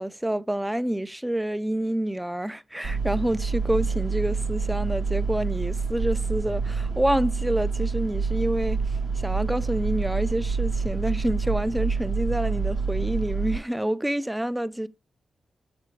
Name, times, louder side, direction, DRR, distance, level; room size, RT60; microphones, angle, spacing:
voice 1, 0.0-8.8 9.2-14.9, right 1 dB, 10° right, 0.4 m, -27 dB
sound 1, 2.8-13.6, right 4 dB, 75° right, 1.3 m, -27 dB
6.5 x 3.4 x 4.5 m
cardioid pair, 80°, 0 cm